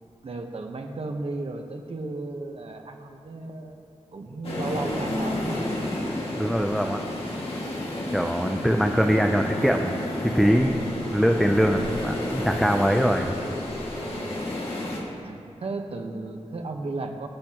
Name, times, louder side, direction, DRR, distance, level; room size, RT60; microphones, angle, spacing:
voice 1, 0.2-3.8 4.1-5.6 14.0-14.3 15.2-17.3, right 2 dB, 55° right, 3 dB, 1.2 m, -34 dB
sound 1, 4.4-15.0, left 1 dB, 55° left, 2.1 m, -31 dB
voice 2, 6.4-7.0 8.1-10.0 10.2-10.8 11.1-13.3, equal, ahead, 3 dB, 0.6 m, -22 dB
22.5 x 8.3 x 3.0 m, 2.4 s
wide cardioid pair, 100°, 12 cm